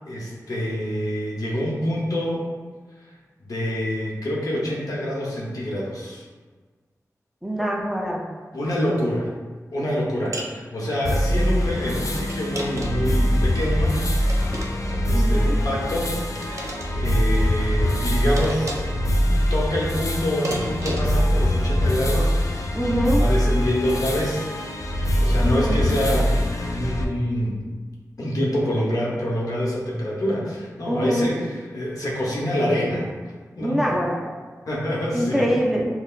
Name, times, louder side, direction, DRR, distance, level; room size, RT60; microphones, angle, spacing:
voice 1, 0.1-2.4 3.4-6.2 8.5-9.3 9.7-14.0 15.0-16.1 16.7-18.9 19.5-24.5 24.8-27.6 28.2-33.1 33.6-34.1 34.7-35.5, equal, 80° left, -4 dB, 0.8 m, -26 dB
voice 2, 7.4-8.2 15.1-15.6 22.7-23.3 25.4-25.9 30.8-31.3 33.6-34.2 35.1-35.9, equal, 5° right, -2 dB, 0.5 m, -24 dB
sound 1, 10.3-10.6 12.3-13.1 14.2-15.0 16.3-16.9 18.4-19.0 20.4-21.2, right 1 dB, 60° right, 0.5 m, -32 dB
sound 2, 11.0-27.0, equal, 60° left, 0.4 m, -23 dB
5.6 x 2.1 x 2.4 m, 1.4 s
wide cardioid pair, 85°, 6 cm